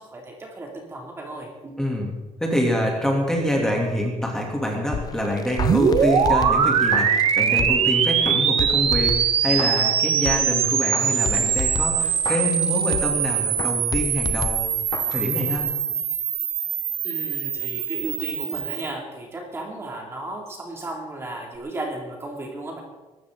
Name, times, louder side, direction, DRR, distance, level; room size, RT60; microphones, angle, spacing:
voice 1, 0.0-1.8 17.0-22.8, right 2 dB, 20° right, 0 dB, 2.6 m, -34 dB
voice 2, 1.8-2.1 2.4-14.6 15.1-15.7, equal, 5° left, -1 dB, 2.7 m, -25 dB
sound 1, 4.9-7.9 8.2-10.0 10.3-13.2 13.6-15.3 15.6-15.7, left 6 dB, 30° left, 0.7 m, -32 dB
sound 2, 5.6-18.9, right 7 dB, 50° right, 1.4 m, -22 dB
23.0 x 13.5 x 3.8 m, 1.2 s
cardioid pair, 175°, 12 cm